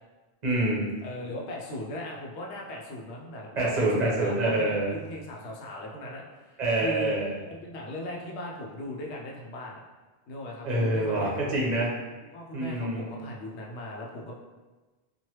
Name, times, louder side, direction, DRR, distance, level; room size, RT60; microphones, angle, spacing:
voice 1, 0.4-0.9 3.6-4.9 6.6-7.3 10.6-11.9 12.5-13.1, right 1 dB, 45° right, -5 dB, 0.9 m, -26 dB
voice 2, 1.0-7.1 7.4-9.8 10.3-11.4 12.3-14.3, left 1 dB, 80° left, -1 dB, 0.9 m, -38 dB
3.1 x 2.5 x 2.9 m, 1.2 s
omnidirectional pair, 1.1 m